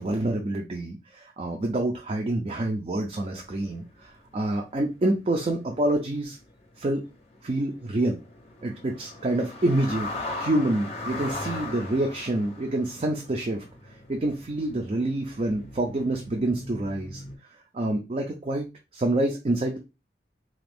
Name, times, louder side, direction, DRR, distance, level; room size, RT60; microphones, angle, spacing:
voice 1, 0.0-6.4 6.8-7.0 7.4-8.2 8.6-17.2 17.5-19.8, right 1 dB, 35° right, 1 dB, 0.4 m, -27 dB
sound 1, 3.1-4.1 4.3-17.4, left 2 dB, 35° left, 0.6 m, -39 dB
2.8 x 2.5 x 3.4 m, 0.27 s
head